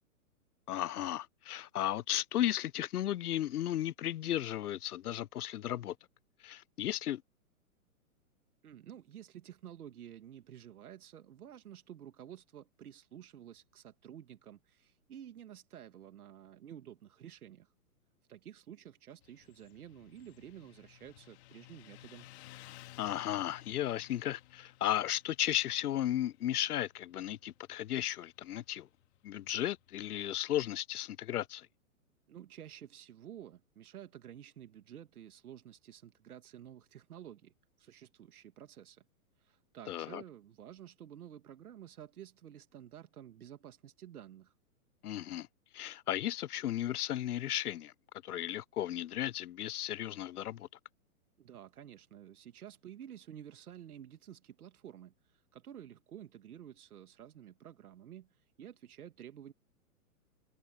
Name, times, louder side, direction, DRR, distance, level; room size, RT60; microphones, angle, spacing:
voice 1, 0.7-6.0 6.4-7.2 23.0-28.9 29.2-31.7 39.9-40.2 45.0-45.5 45.7-47.9 48.2-50.7, left 12 dB, 85° left, 0.7 m, -35 dB
voice 2, 8.6-17.7 18.3-22.3 32.3-39.0 39.4-44.5 51.4-59.5, right 10 dB, 80° right, 1.7 m, -51 dB
Motorcycle, 19.2-30.3, left 15 dB, 45° left, 2.5 m, -57 dB
hypercardioid pair, 140°, 44 cm